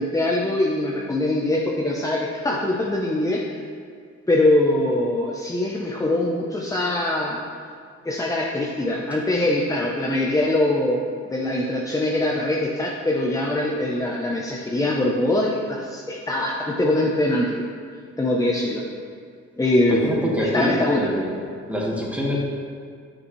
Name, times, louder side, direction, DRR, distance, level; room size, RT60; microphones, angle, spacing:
voice 1, 0.0-3.4 4.3-7.4 8.0-17.7 18.2-18.8 19.6-21.1, left 1 dB, 10° left, -2 dB, 0.7 m, -23 dB
voice 2, 19.9-21.4 21.7-22.4, equal, 5° right, -4 dB, 1.6 m, -24 dB
9.0 x 6.2 x 3.1 m, 2.1 s
cardioid pair, 90°, 30 cm